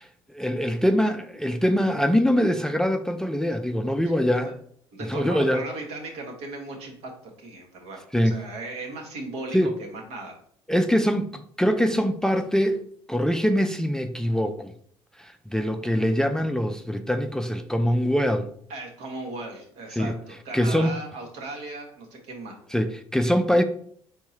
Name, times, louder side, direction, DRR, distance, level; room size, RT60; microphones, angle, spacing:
voice 1, 0.0-4.5 5.1-5.6 8.1-8.4 9.5-9.7 10.7-12.8 13.1-14.7 15.2-18.5 19.9-20.1 20.5-20.9 22.7-23.6, equal, 5° left, 0.4 m, -23 dB
voice 2, 4.9-7.1 7.4-10.3 18.7-22.5, right 2 dB, 75° right, 1.3 m, -37 dB
4.6 x 3.6 x 2.8 m
supercardioid pair, 75°, 12 cm